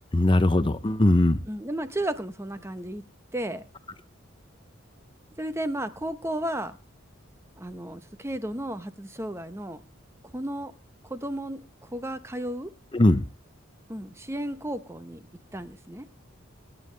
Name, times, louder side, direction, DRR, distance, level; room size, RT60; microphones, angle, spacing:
voice 1, 0.1-1.4 12.9-13.2, left 1 dB, 25° left, 12 dB, 0.6 m, -20 dB
voice 2, 1.5-3.0 3.3-3.6 5.4-6.7 7.6-9.8 10.3-10.7 11.0-12.7 13.9-15.2 15.5-16.1, right 1 dB, 15° right, 11 dB, 0.8 m, -33 dB
25.0 x 9.4 x 3.3 m, 0.32 s
head